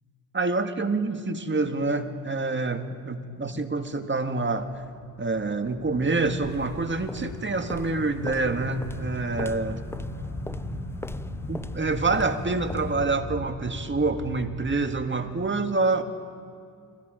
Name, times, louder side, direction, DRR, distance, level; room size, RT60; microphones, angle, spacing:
voice 1, 0.3-4.8 5.2-9.8 11.5-16.0, right 3 dB, 25° right, 7 dB, 1.9 m, -27 dB
sound 1, 4.8-15.0, left 1 dB, 30° left, 4.0 m, -38 dB
sound 2, 6.4-13.2, left 2 dB, 5° left, 0.6 m, -41 dB
30.0 x 21.5 x 5.2 m, 2.4 s
supercardioid pair, 60°, 44 cm